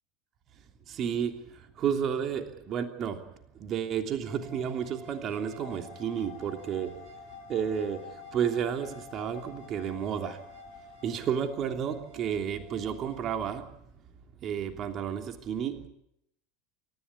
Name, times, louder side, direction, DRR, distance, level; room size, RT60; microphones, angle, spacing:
voice 1, 0.6-3.3 3.5-7.0 7.4-10.6 11.0-13.7 14.4-15.9, right 8 dB, 40° right, 5 dB, 3.2 m, -32 dB
sound 1, 4.3-13.3, equal, 55° right, 4.0 m, -51 dB
sound 2, 5.6-11.1, left 12 dB, 60° left, 3.2 m, -50 dB
28.5 x 15.0 x 8.6 m, 0.75 s
figure-of-eight pair, 75°, 0 cm